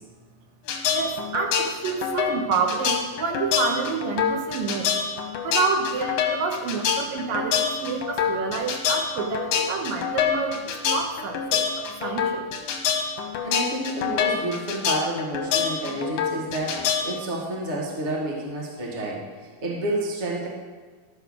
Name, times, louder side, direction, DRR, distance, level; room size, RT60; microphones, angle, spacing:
sound 1, 0.7-17.0, left 7 dB, 75° left, 2.6 m, -26 dB
voice 1, 0.9-12.5, right 5 dB, 75° right, 3 dB, 2.7 m, -28 dB
voice 2, 13.4-20.5, right 1 dB, 30° right, -4 dB, 1.2 m, -30 dB
13.0 x 5.7 x 6.5 m, 1.5 s
omnidirectional pair, 4.3 m